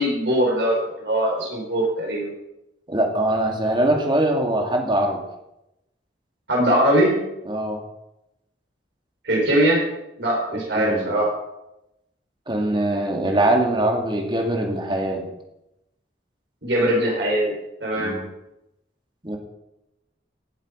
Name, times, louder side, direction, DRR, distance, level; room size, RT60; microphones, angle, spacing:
voice 1, 0.0-2.3 6.5-7.2 9.2-9.8 10.2-11.3 16.6-17.5 17.8-18.2, right 1 dB, 75° right, -3 dB, 4.3 m, -21 dB
voice 2, 2.9-5.2 7.5-7.8 10.7-11.2 12.5-15.3 18.0-18.3 19.2-19.4, right 1 dB, 25° right, 2 dB, 2.1 m, -22 dB
17.0 x 7.5 x 5.0 m, 0.88 s
head